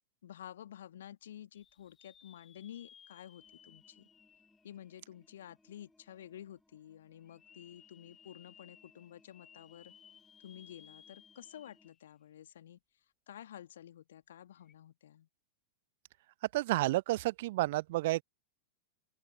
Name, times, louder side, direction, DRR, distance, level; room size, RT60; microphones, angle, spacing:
voice 1, 0.2-4.1 4.6-9.9 10.4-12.8 13.3-15.3, left 11 dB, 60° left, 1.9 m, -51 dB
sound 1, 1.5-5.5 6.0-6.1 7.2-12.1 12.5-12.6 14.6-14.7, left 8 dB, 25° left, 2.5 m, -61 dB
sound 2, 3.4-11.9, left 2 dB, 5° left, 5.4 m, -70 dB
voice 2, 16.5-18.2, right 18 dB, 50° right, 0.6 m, -30 dB
open air
figure-of-eight pair, 90°, 0 cm